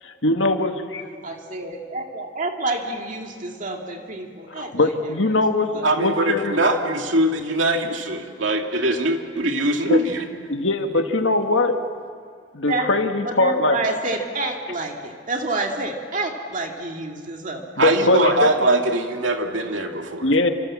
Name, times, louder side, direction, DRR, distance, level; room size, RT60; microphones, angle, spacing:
voice 1, 0.0-1.1 4.5-6.5 9.9-10.0 10.5-11.8 12.5-13.8 17.8-18.5 20.2-20.5, left 2 dB, 75° left, 5 dB, 2.1 m, -21 dB
voice 2, 1.2-5.2 5.7-5.9 12.7-12.9 13.3-17.6, right 2 dB, 45° right, 2 dB, 2.1 m, -28 dB
voice 3, 5.8-10.2 17.8-20.3, right 1 dB, 80° right, 3 dB, 2.5 m, -22 dB
28.5 x 26.5 x 7.5 m, 2.1 s
head